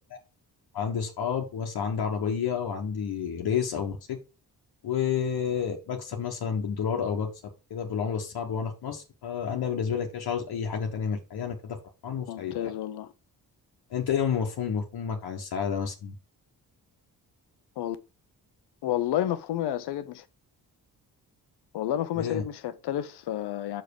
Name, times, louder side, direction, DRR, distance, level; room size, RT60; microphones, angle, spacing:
voice 1, 0.7-4.2 4.8-7.3 7.7-11.8 12.0-12.7 13.9-16.1 22.2-22.4, left 7 dB, 75° left, 1.3 m, -30 dB
voice 2, 12.3-13.1 17.8-18.0 18.8-20.3 21.7-23.8, left 11 dB, 90° left, 0.9 m, -30 dB
5.9 x 5.3 x 4.7 m
cardioid pair, 85°, 39 cm